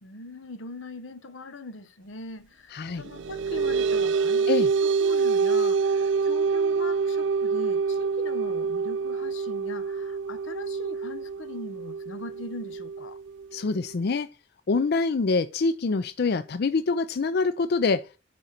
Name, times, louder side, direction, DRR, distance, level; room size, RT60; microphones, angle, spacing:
voice 1, 0.0-4.7 5.0-13.2, left 2 dB, 85° left, 1.0 m, -41 dB
voice 2, 2.7-3.1 4.5-4.7 13.5-14.3 14.7-18.1, left 4 dB, 55° left, 0.5 m, -25 dB
sound 1, 3.0-13.9, right 5 dB, 70° right, 0.5 m, -26 dB
8.8 x 4.3 x 6.5 m
head